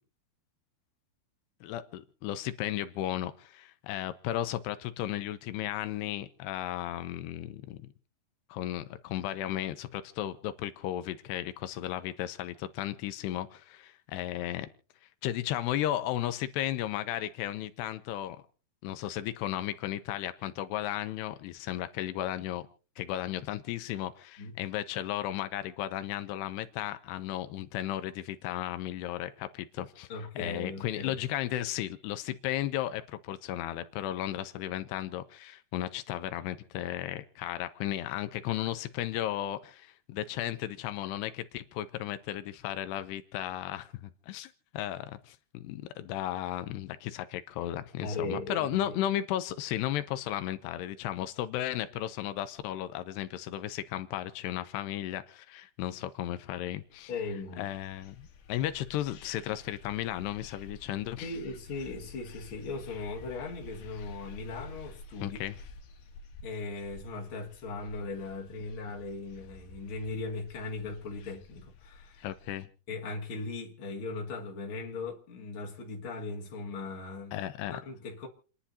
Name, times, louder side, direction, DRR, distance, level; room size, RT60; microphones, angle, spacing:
voice 1, 1.6-7.9 8.5-14.7 15.2-18.4 18.8-22.7 23.0-30.1 30.4-57.1 57.6-61.3 65.2-65.6 72.2-72.7 77.3-77.8, left 13 dB, 85° left, 2.9 m, -35 dB
voice 2, 30.1-31.2 48.0-48.9 57.1-57.7 61.2-65.4 66.4-72.3 72.9-77.4 77.7-78.3, left 3 dB, 35° left, 2.7 m, -38 dB
sound 1, 57.0-72.6, left 3 dB, 70° left, 3.0 m, -50 dB
29.0 x 11.0 x 2.8 m
omnidirectional pair, 4.7 m